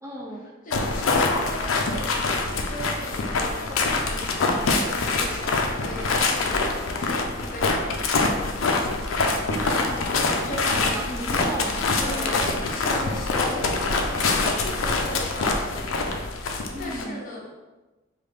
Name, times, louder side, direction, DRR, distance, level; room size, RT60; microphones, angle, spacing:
voice 1, 0.0-0.5 9.5-12.7 16.7-17.2, right 1 dB, 15° right, -2 dB, 0.4 m, -35 dB
voice 2, 0.6-2.2 2.7-8.8 10.5-10.9 12.0-17.5, left 2 dB, 45° left, -3 dB, 0.7 m, -37 dB
sound 1, 0.7-17.0, left 3 dB, 85° left, 0.4 m, -25 dB
3.4 x 2.3 x 3.2 m, 1.1 s
head